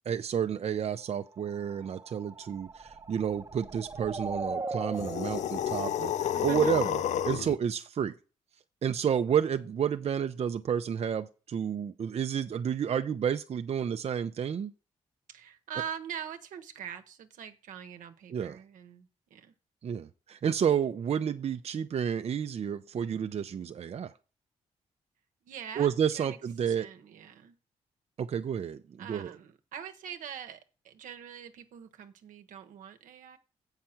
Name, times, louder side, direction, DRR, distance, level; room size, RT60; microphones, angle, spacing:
voice 1, 0.0-8.1 8.8-14.7 18.3-18.6 19.8-24.1 25.8-26.9 28.2-29.3, right 8 dB, 55° right, 9 dB, 0.6 m, -30 dB
sound 1, 1.4-7.2, right 3 dB, 25° right, 0.8 m, -40 dB
sound 2, 4.9-7.6, left 10 dB, 65° left, 0.4 m, -30 dB
voice 2, 6.3-7.0 15.3-19.5 25.4-26.4 26.7-27.6 29.0-33.4, right 8 dB, 80° right, 7 dB, 1.0 m, -43 dB
7.6 x 5.8 x 5.8 m, 0.34 s
supercardioid pair, 60°, 13 cm